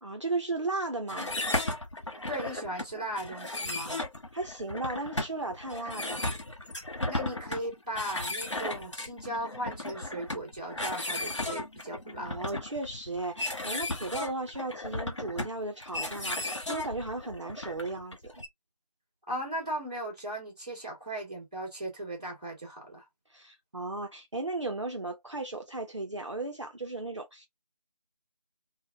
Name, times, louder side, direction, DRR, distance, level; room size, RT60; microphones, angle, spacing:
voice 1, 0.0-1.4 4.3-6.3 12.2-18.3 23.3-27.5, right 2 dB, 50° right, 0.5 m, -35 dB
sound 1, 1.1-18.5, left 2 dB, 50° left, 0.7 m, -35 dB
voice 2, 2.3-4.0 7.1-12.4 19.3-23.1, right 1 dB, 10° right, 1.3 m, -37 dB
3.4 x 2.0 x 2.6 m
figure-of-eight pair, 175°, 20 cm